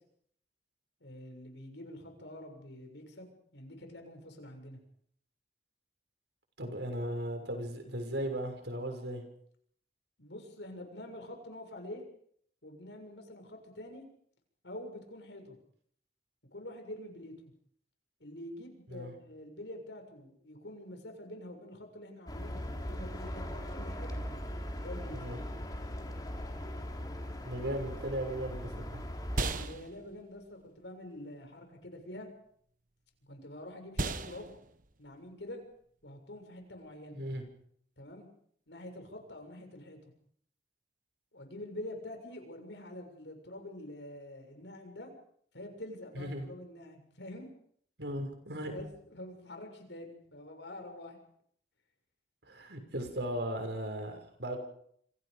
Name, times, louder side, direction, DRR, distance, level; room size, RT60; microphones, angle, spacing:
voice 1, 1.0-4.8 10.2-12.0 12.6-14.0 14.6-15.6 16.5-17.5 18.2-24.2 24.8-25.2 29.5-32.3 33.2-34.5 35.0-35.6 36.0-37.2 38.0-38.3 38.7-40.0 41.3-45.1 45.5-47.5 48.7-51.2, left 1 dB, 90° left, 4 dB, 7.0 m, -46 dB
voice 2, 6.6-9.2 18.9-19.1 25.1-25.4 27.4-29.0 37.1-37.4 46.1-46.5 48.0-48.8 52.4-54.6, right 1 dB, 75° right, 5 dB, 6.5 m, -37 dB
sound 1, 22.3-29.7, equal, 25° left, 3.7 m, -39 dB
sound 2, 29.3-37.6, right 3 dB, 50° right, 1.4 m, -41 dB
28.5 x 26.5 x 5.3 m, 0.66 s
head